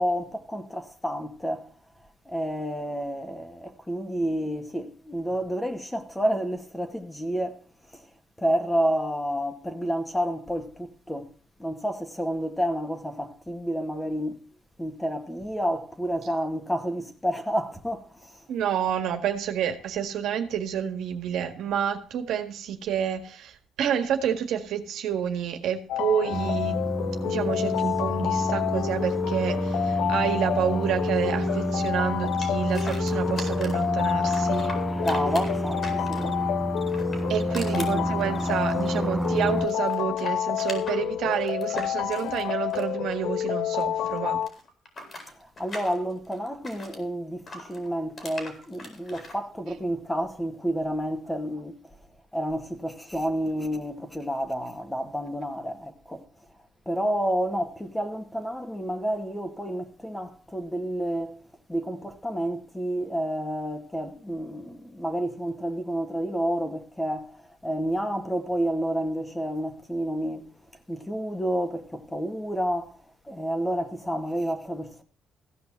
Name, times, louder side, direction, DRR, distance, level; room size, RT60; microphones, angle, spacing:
voice 1, 0.0-1.7 2.3-7.6 7.9-8.0 8.4-11.3 11.6-14.4 14.8-18.4 34.9-36.4 37.8-38.1 45.6-51.8 52.3-56.2 56.9-61.3 61.7-67.3 67.6-70.5 70.9-73.0 73.3-75.0, equal, 10° left, 2.0 m, -30 dB
voice 2, 18.5-26.8 27.2-34.8 37.3-44.4, right 9 dB, 80° right, 1.8 m, -29 dB
sound 1, 25.9-44.5, left 10 dB, 85° left, 0.5 m, -29 dB
sound 2, 26.3-39.7, right 1 dB, 5° right, 0.6 m, -29 dB
sound 3, 32.4-33.9 34.2-36.4 36.8-39.4 39.6-43.8 44.1-47.0 47.5-49.4, left 2 dB, 45° left, 4.3 m, -40 dB
15.0 x 5.7 x 7.4 m
cardioid pair, 90°, 0 cm